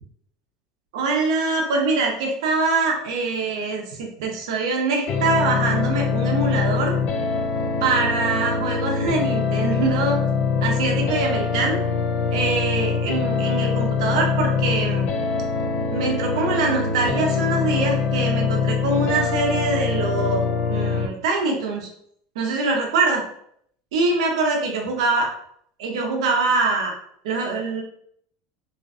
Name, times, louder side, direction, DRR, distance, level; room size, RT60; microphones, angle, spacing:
voice 1, 0.9-7.0 7.8-10.2 10.6-11.8 12.3-15.1 15.9-20.4 20.7-21.9 22.4-23.2 23.9-25.3 25.8-26.9 27.2-27.8, right 3 dB, 90° right, 1 dB, 0.6 m, -23 dB
sound 1, 5.1-21.1, left 5 dB, 40° left, 0.3 m, -23 dB
2.5 x 2.3 x 2.4 m, 0.67 s
supercardioid pair, 155°, 3 cm